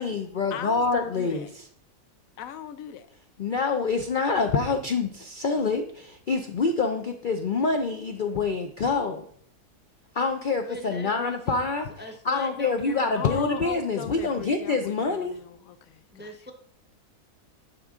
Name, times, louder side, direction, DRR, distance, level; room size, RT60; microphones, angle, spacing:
voice 1, 0.0-1.4 3.4-9.2 10.1-11.9 12.2-15.3, left 4 dB, 90° left, 0.4 m, -26 dB
voice 2, 0.5-1.5 2.4-3.1 13.2-16.4, left 9 dB, 70° left, 1.0 m, -38 dB
voice 3, 10.7-11.7 12.0-13.5 16.1-16.5, left 1 dB, 15° right, 0.4 m, -41 dB
11.0 x 5.2 x 3.6 m
omnidirectional pair, 1.7 m